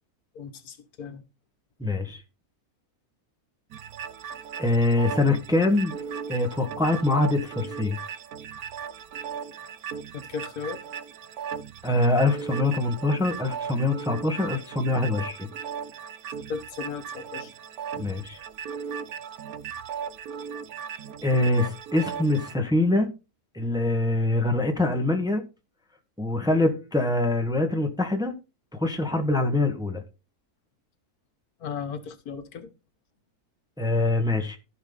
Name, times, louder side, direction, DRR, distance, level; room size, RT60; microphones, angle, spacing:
voice 1, 0.3-1.2 10.1-10.8 16.5-17.5 31.6-32.7, left 6 dB, 75° left, 1.6 m, -36 dB
voice 2, 1.8-2.2 4.6-5.9 6.3-8.0 11.8-15.5 18.0-18.4 21.2-23.1 23.5-25.4 26.2-28.3 28.7-30.0 33.8-34.6, left 2 dB, 5° right, 1.2 m, -24 dB
sound 1, 3.7-22.6, right 7 dB, 75° right, 1.2 m, -37 dB
14.5 x 5.4 x 4.0 m
omnidirectional pair, 1.6 m